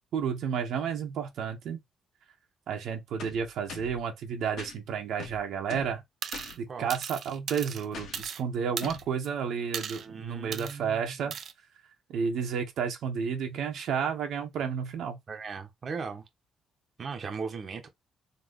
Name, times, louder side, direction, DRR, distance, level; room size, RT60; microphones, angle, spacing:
voice 1, 0.1-1.8 2.7-6.0 6.6-11.4 12.1-15.2, right 7 dB, 75° right, 1.2 m, -31 dB
sound 1, 3.2-4.0 4.6-4.8 5.2-6.0 6.3-6.6 7.9-8.3 8.8-9.1, left 6 dB, 70° left, 1.6 m, -42 dB
sound 2, 6.2-6.6 6.9-8.4 8.8-9.3 9.7-10.1 10.5-10.8 11.3-11.5, right 7 dB, 60° right, 0.7 m, -37 dB
voice 2, 9.9-11.3 15.3-16.2 17.0-17.9, right 5 dB, 45° right, 1.2 m, -38 dB
4.1 x 3.2 x 3.1 m
cardioid pair, 90°, 0 cm